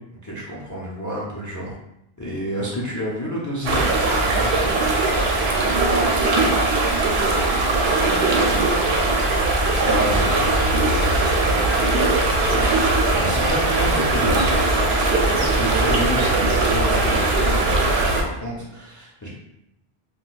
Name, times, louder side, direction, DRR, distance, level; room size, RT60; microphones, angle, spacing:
voice 1, 0.2-1.7 2.2-4.8 9.8-10.4 12.3-12.6 13.0-14.6 15.3-19.3, equal, 30° left, -5 dB, 0.3 m, -29 dB
sound 1, 3.6-18.2, right 2 dB, 80° right, 0.8 m, -20 dB
voice 2, 5.6-9.1 9.9-11.7 13.7-15.5 18.3-18.6, right 2 dB, 50° right, -4 dB, 0.5 m, -33 dB
2.4 x 2.2 x 3.8 m, 0.82 s
omnidirectional pair, 1.0 m